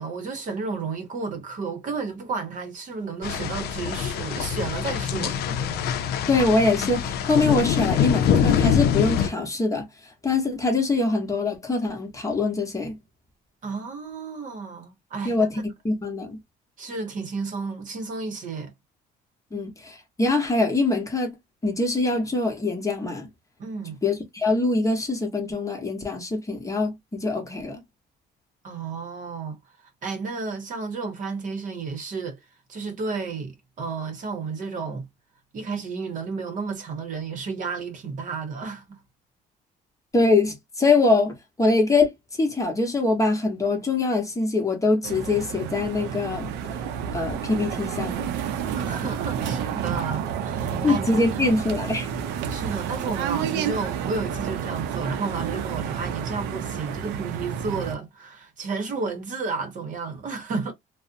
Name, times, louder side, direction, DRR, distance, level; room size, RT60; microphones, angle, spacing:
voice 1, 0.0-5.6 6.1-6.2 13.6-15.5 16.8-18.7 23.6-24.0 28.6-35.1 35.5-39.0 48.7-51.4 52.5-60.7, right 4 dB, 50° right, 0.8 m, -32 dB
sound 1, 3.2-9.3, left 8 dB, 70° left, 0.5 m, -24 dB
voice 2, 6.3-9.8 10.2-13.0 15.2-15.5 15.8-16.4 19.5-21.3 21.6-23.3 24.0-27.8 40.1-42.1 42.4-46.5 47.1-48.2 50.8-52.1, left 3 dB, 20° left, 0.9 m, -23 dB
sound 2, 45.0-57.9, right 8 dB, 90° right, 0.5 m, -30 dB
2.5 x 2.0 x 2.5 m
cardioid pair, 110°, 17 cm